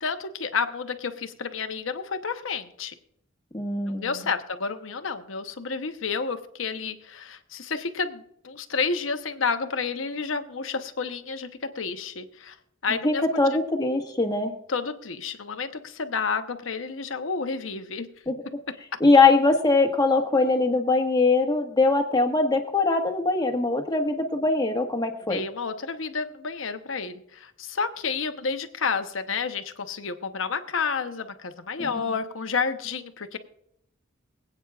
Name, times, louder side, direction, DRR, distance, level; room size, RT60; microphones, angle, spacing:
voice 1, 0.0-2.9 3.9-12.6 12.8-13.5 14.7-18.1 25.3-33.4, left 5 dB, 80° left, 8 dB, 0.9 m, -30 dB
voice 2, 3.5-4.3 13.0-14.5 18.3-18.4 19.0-25.4 31.8-32.0, left 3 dB, 20° left, 3 dB, 1.4 m, -22 dB
24.5 x 8.7 x 2.4 m, 0.73 s
head